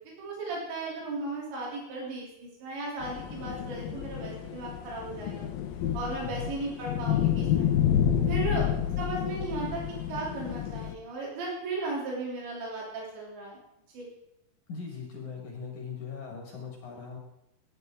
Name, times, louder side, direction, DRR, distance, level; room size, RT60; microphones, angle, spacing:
voice 1, 0.2-5.5 5.9-7.7 8.3-8.6 9.0-9.8 10.1-13.6 13.9-14.1, right 3 dB, 85° right, -4 dB, 5.4 m, -36 dB
sound 1, 3.0-11.0, left 9 dB, 70° left, 2.4 m, -29 dB
voice 2, 6.2-6.5 14.7-17.2, left 5 dB, 55° left, 0 dB, 2.6 m, -40 dB
16.0 x 9.5 x 3.7 m, 0.82 s
omnidirectional pair, 4.9 m